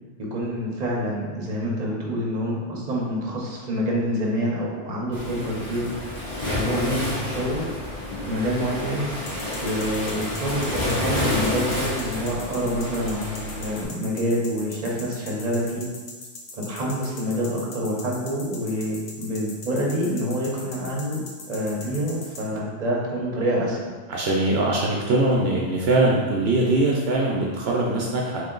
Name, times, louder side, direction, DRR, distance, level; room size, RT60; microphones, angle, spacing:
voice 1, 0.2-5.9 6.5-7.7 8.3-9.1 9.6-15.9 16.5-21.2 21.5-23.9, equal, 45° right, -3 dB, 0.8 m, -27 dB
Waves surf, 5.1-13.8, left 1 dB, 30° left, 0.8 m, -29 dB
sound 1, 9.3-22.4, left 3 dB, 65° left, 0.9 m, -40 dB
voice 2, 24.1-28.5, right 2 dB, 75° right, -3 dB, 0.8 m, -22 dB
3.1 x 2.8 x 3.7 m, 1.4 s
omnidirectional pair, 1.1 m